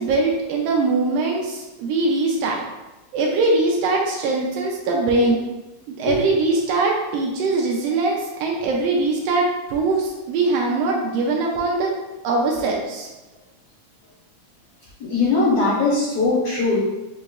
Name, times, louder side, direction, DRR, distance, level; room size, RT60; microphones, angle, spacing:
voice 1, 0.0-2.6 3.1-5.4 5.9-11.9 12.2-13.1, right 3 dB, 85° right, -1 dB, 1.4 m, -21 dB
voice 2, 15.0-16.8, left 3 dB, 70° left, -7 dB, 1.9 m, -20 dB
5.3 x 2.9 x 2.3 m, 1.1 s
omnidirectional pair, 3.4 m